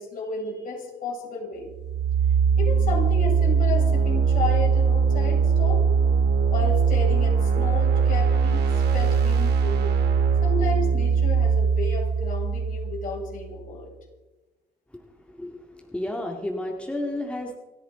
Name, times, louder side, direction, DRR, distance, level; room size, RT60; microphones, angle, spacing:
voice 1, 0.0-1.7 2.6-5.8 6.5-8.7 8.9-9.9 10.4-13.9, left 3 dB, 55° left, -1 dB, 6.7 m, -32 dB
sound 1, 1.7-13.5, right 6 dB, 75° right, 2.5 m, -21 dB
voice 2, 15.9-17.6, left 1 dB, 5° left, 1 dB, 2.1 m, -31 dB
29.0 x 10.0 x 3.9 m, 1.1 s
cardioid pair, 110°, 17 cm